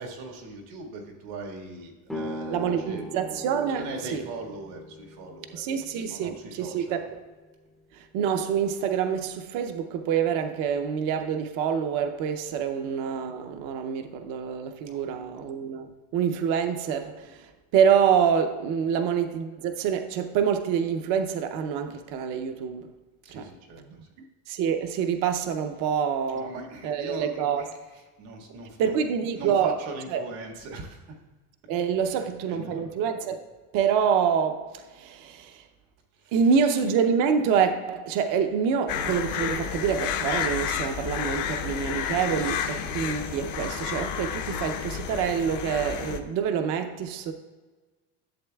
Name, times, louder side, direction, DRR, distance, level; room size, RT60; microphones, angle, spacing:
voice 1, 0.0-3.1 3.7-5.6 6.1-7.0 14.9-15.1 18.8-18.9 23.2-23.8 25.8-25.9 26.3-31.0 32.1-32.8 36.1-36.5, right 3 dB, 85° right, 1.8 m, -40 dB
sound 1, 2.1-7.8, left 1 dB, ahead, 0.5 m, -41 dB
voice 2, 2.5-3.9 4.1-4.2 5.5-7.1 7.9-22.9 23.4-23.5 23.9-24.0 24.5-27.7 28.8-29.8 30.1-30.2 31.7-33.4 33.7-35.6 36.3-47.3, right 7 dB, 55° right, 0.6 m, -26 dB
sound 2, 38.9-46.2, left 8 dB, 50° left, 0.6 m, -31 dB
11.5 x 7.8 x 2.3 m
cardioid pair, 180°, 40 cm